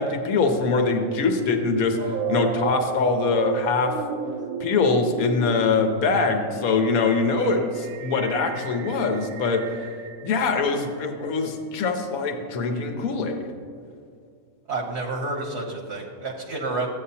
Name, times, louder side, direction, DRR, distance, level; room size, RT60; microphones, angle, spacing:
voice 1, 0.0-3.9 4.6-9.8 10.2-13.4, left 4 dB, 70° left, 4 dB, 1.3 m, -23 dB
sound 1, 2.0-10.9, right 7 dB, 75° right, 1.1 m, -34 dB
voice 2, 14.7-16.9, right 3 dB, 50° right, 1 dB, 1.0 m, -29 dB
13.5 x 8.9 x 2.8 m, 2.3 s
omnidirectional pair, 1.6 m